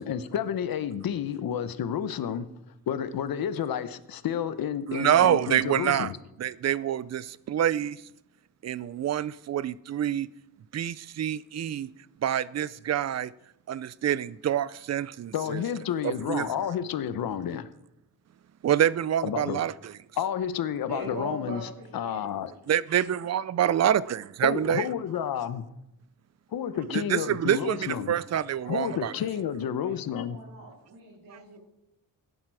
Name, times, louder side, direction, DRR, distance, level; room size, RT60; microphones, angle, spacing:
voice 1, 0.0-2.5 2.9-6.2 15.3-17.7 19.2-19.6 20.2-21.6 21.9-22.5 24.4-25.7 26.5-28.1 28.7-30.4, left 8 dB, 80° left, 1.0 m, -30 dB
voice 2, 4.9-6.1 6.4-8.0 8.6-10.3 10.7-11.9 12.2-13.3 13.7-15.6 16.0-16.5 18.6-19.9 22.7-24.9 26.9-29.1, right 10 dB, 50° right, 0.5 m, -26 dB
voice 3, 20.9-22.3 28.6-31.6, right 2 dB, 75° right, 3.4 m, -42 dB
16.0 x 10.0 x 4.8 m
wide cardioid pair, 115°, 35 cm